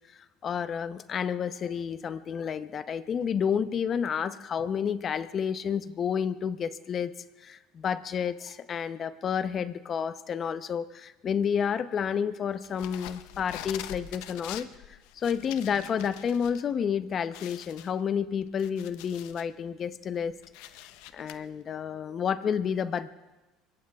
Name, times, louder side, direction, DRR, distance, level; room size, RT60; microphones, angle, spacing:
voice 1, 0.4-7.1 7.4-14.7 15.2-20.4 21.1-23.1, left 7 dB, 40° left, 12 dB, 0.8 m, -30 dB
sound 1, 12.6-16.6 16.9-17.0 17.3-19.5 20.0-21.3, left 13 dB, 75° left, 0.7 m, -44 dB
25.5 x 22.5 x 2.4 m, 1.1 s
supercardioid pair, 100°, 0 cm